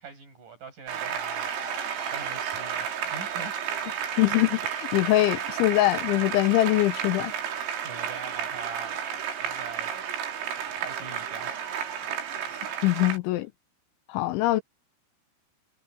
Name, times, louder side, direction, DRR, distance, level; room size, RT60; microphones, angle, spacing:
voice 1, 0.0-3.6 7.8-9.0 9.4-10.0 10.8-11.7 14.3-14.4, right 5 dB, 40° right, 9.2 m, -43 dB
Applause, 0.9-13.2, right 8 dB, 75° right, 6.0 m, -32 dB
voice 2, 4.2-7.3 12.8-13.5 14.1-14.6, left 17 dB, 85° left, 2.9 m, -23 dB
omnidirectional pair, 5.9 m